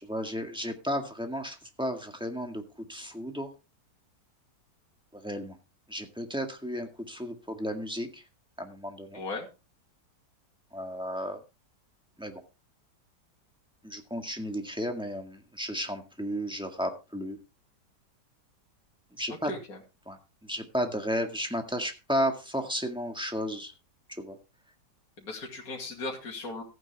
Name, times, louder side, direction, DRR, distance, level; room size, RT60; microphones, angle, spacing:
voice 1, 0.0-3.5 5.1-5.6 5.9-8.2 8.6-9.2 10.7-11.4 12.2-12.4 13.8-17.4 19.1-19.6 20.0-23.7 24.1-24.4, equal, 5° right, 3 dB, 1.7 m, -33 dB
voice 2, 9.1-9.5 19.5-19.8 25.2-26.6, left 2 dB, 55° left, -1 dB, 2.9 m, -37 dB
15.0 x 9.0 x 3.5 m, 0.29 s
omnidirectional pair, 1.8 m